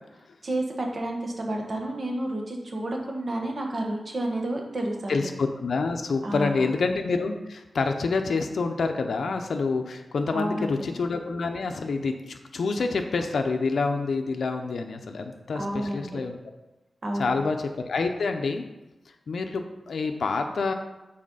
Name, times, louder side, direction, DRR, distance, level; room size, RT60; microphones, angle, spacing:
voice 1, 0.4-5.2 6.2-6.7 10.3-10.9 15.5-16.2 17.0-17.4, right 1 dB, 45° right, 1 dB, 1.4 m, -30 dB
voice 2, 5.1-16.4 17.2-18.6 19.3-20.7, left 4 dB, 75° left, 5 dB, 0.6 m, -27 dB
7.6 x 4.2 x 5.6 m, 1.0 s
wide cardioid pair, 130°, 0 cm